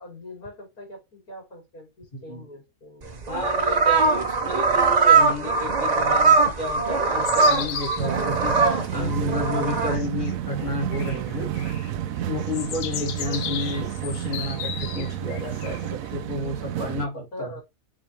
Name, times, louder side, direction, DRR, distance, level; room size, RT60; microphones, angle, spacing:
voice 1, 0.0-3.2 13.3-13.7 17.3-17.6, left 1 dB, 75° left, 0 dB, 3.7 m, -42 dB
voice 2, 2.1-2.5 3.3-11.5 12.3-17.6, left 2 dB, 30° left, -2 dB, 2.9 m, -31 dB
sound 1, 3.0-10.0, right 4 dB, 35° right, 0.8 m, -21 dB
sound 2, 7.2-8.1 8.5-8.6 9.9-10.3 10.6-11.9 12.4-16.1, left 10 dB, 90° left, 1.3 m, -35 dB
sound 3, 8.0-17.1, right 11 dB, 70° right, 1.0 m, -31 dB
7.4 x 3.9 x 3.3 m, 0.22 s
omnidirectional pair, 1.6 m